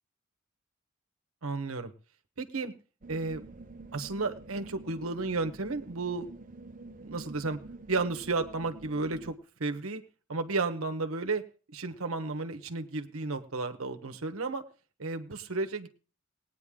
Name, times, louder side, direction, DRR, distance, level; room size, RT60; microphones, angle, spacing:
voice 1, 1.4-1.9 2.4-2.7 3.1-3.4 3.9-6.3 7.0-7.6 7.9-10.0 10.3-14.6 15.0-15.9, right 3 dB, 85° right, 8 dB, 1.1 m, -33 dB
sound 1, 3.0-9.3, right 2 dB, 40° right, 0.7 m, -48 dB
18.5 x 9.3 x 3.6 m, 0.37 s
head